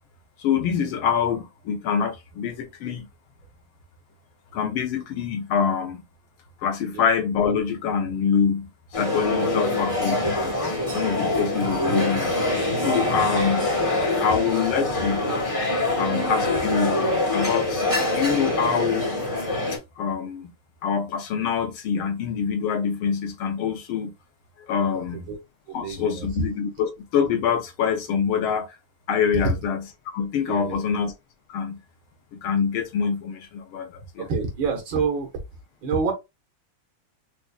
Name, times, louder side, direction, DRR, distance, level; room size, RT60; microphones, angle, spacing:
voice 1, 0.4-3.1 4.5-6.0 6.6-12.4 12.8-13.7 14.0-15.3 16.0-17.0 17.3-19.1 20.0-20.5 20.8-24.1 24.7-25.2 25.7-28.7 29.1-29.8 30.1-31.1 31.5-31.8 32.3-34.3, left 6 dB, 80° left, 1.6 m, -25 dB
sound 1, 8.9-19.8, left 2 dB, 20° left, 0.9 m, -24 dB
voice 2, 25.0-25.4 25.7-26.3 30.5-30.8 34.3-35.3 35.8-36.1, right 5 dB, 70° right, 1.9 m, -28 dB
5.1 x 2.5 x 2.3 m
omnidirectional pair, 2.3 m